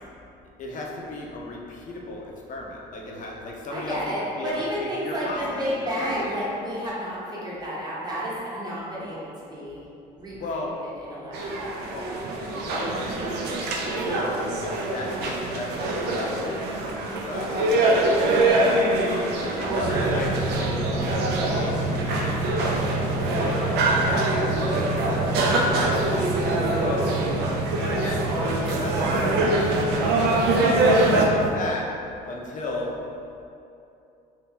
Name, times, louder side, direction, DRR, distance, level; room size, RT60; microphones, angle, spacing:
voice 1, 0.6-6.4 10.3-10.7 11.9-13.6 13.9-14.3 14.6-16.7 17.2-22.4 22.8-23.6 24.6-26.0 26.8-27.1 27.8-29.5 30.6-31.9 32.3-32.9, left 2 dB, 50° left, -1 dB, 0.6 m, -35 dB
voice 2, 3.7-9.8 10.2-11.5 17.4-17.6 25.7-25.9, equal, 25° right, -7 dB, 1.0 m, -31 dB
sound 1, 11.3-31.3, right 2 dB, 80° right, 0.5 m, -24 dB
sound 2, 19.8-31.5, right 2 dB, 80° left, 0.8 m, -29 dB
2.8 x 2.6 x 3.6 m, 2.6 s
cardioid pair, 110°, 17 cm